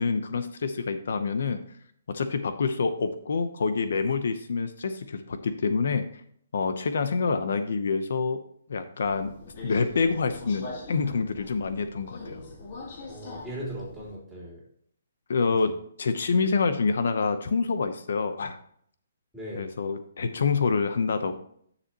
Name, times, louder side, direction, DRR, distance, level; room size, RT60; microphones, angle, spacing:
voice 1, 0.0-1.6 2.1-6.2 6.5-8.4 8.7-9.3 9.6-12.4 15.3-18.6 19.6-21.3, left 4 dB, 65° left, 9 dB, 0.8 m, -27 dB
Subway metro underground, 9.0-14.2, left 2 dB, 35° left, 1.6 m, -42 dB
voice 2, 13.1-14.6 15.4-15.8 19.3-19.7, equal, ahead, -8 dB, 3.7 m, -39 dB
9.8 x 7.0 x 3.0 m, 0.63 s
hypercardioid pair, 170°, 0 cm